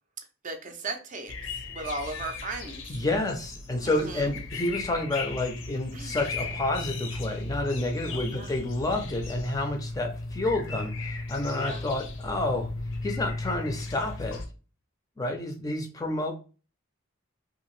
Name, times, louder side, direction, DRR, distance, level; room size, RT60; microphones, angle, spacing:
voice 1, 0.4-1.3 1.7-2.8 3.8-4.4 5.9-6.2 8.1-8.5 11.4-11.8, right 2 dB, 40° right, 0.4 m, -37 dB
sound 1, 1.3-14.5, left 2 dB, 65° left, 0.5 m, -36 dB
voice 2, 2.9-12.7 13.0-14.4 15.2-16.3, left 2 dB, 20° left, 0.4 m, -29 dB
2.8 x 2.5 x 3.0 m
head